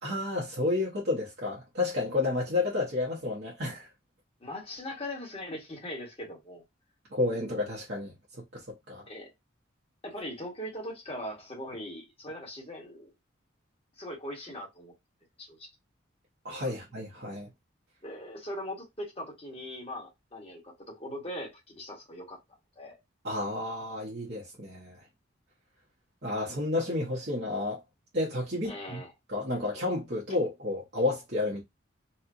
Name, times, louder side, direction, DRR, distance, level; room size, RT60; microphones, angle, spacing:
voice 1, 0.0-3.9 7.1-8.1 8.5-8.6 8.9-9.0 16.4-17.5 23.2-25.0 26.2-27.8 28.1-29.0 29.3-31.6, left 2 dB, 55° right, 1.1 m, -31 dB
voice 2, 4.4-6.6 7.3-7.4 9.1-9.3 10.0-13.1 14.0-14.9 15.4-15.7 16.7-16.8 18.0-22.4 22.7-23.0 28.6-29.1, left 1 dB, 30° left, 1.6 m, -40 dB
4.3 x 2.4 x 2.6 m
head